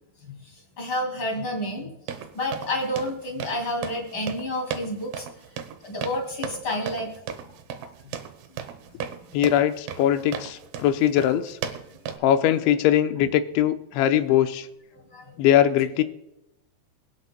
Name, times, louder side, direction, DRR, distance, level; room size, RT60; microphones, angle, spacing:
voice 1, 0.2-1.9 2.3-5.3 5.8-7.1 13.2-13.3 14.9-15.3, left 1 dB, 40° left, 1 dB, 1.8 m, -30 dB
sound 1, 2.1-12.2, right 8 dB, 80° right, 2.1 m, -36 dB
voice 2, 9.3-11.6 12.2-14.7 15.4-16.0, left 11 dB, 80° left, 8 dB, 3.1 m, -21 dB
23.5 x 9.5 x 2.2 m, 0.89 s
omnidirectional pair, 5.4 m